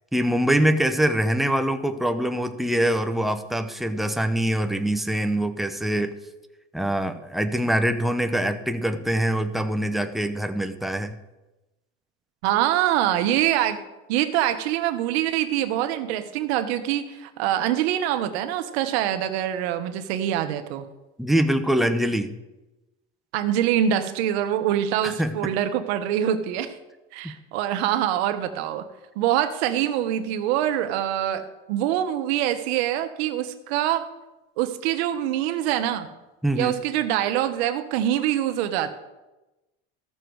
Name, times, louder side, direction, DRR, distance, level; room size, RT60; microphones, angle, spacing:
voice 1, 0.1-6.1 6.7-11.2 21.2-22.3 25.0-25.5 36.4-36.8, right 1 dB, ahead, 7 dB, 0.6 m, -24 dB
voice 2, 12.4-13.8 14.1-20.8 23.3-26.8 27.1-28.9 29.2-34.0 34.6-36.1 36.6-38.9, right 11 dB, 85° right, 9 dB, 1.0 m, -24 dB
14.5 x 6.4 x 4.6 m, 1.0 s
cardioid pair, 135°, 31 cm